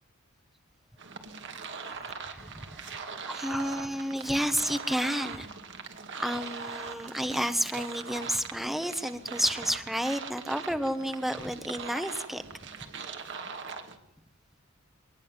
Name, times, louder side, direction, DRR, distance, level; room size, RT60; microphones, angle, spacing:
sound 1, 1.0-14.0, right 5 dB, 55° right, 2.3 m, -41 dB
voice 1, 2.1-5.5 6.2-12.4, equal, ahead, 9 dB, 1.2 m, -31 dB
24.0 x 19.5 x 7.4 m, 0.91 s
head